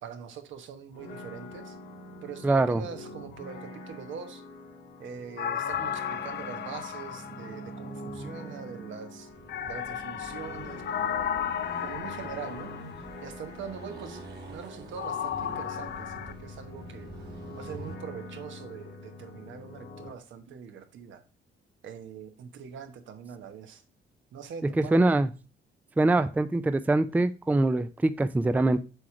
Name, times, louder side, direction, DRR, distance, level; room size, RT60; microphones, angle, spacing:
voice 1, 0.0-1.8 2.2-4.4 5.0-9.3 9.6-11.3 11.8-12.7 13.2-17.1 17.5-21.2 21.8-23.8 24.3-25.1, right 7 dB, 75° right, 1.0 m, -43 dB
sound 1, 0.9-20.1, left 1 dB, 85° left, 2.0 m, -44 dB
voice 2, 2.4-2.8 24.7-25.3 26.0-28.8, right 2 dB, 10° right, 0.4 m, -23 dB
sound 2, 5.4-8.2 9.5-13.3 15.0-16.3, left 9 dB, 60° left, 0.6 m, -34 dB
Accelerating revving vroom, 9.3-18.0, right 2 dB, 55° right, 2.0 m, -47 dB
7.7 x 3.1 x 4.8 m
cardioid pair, 90°, 20 cm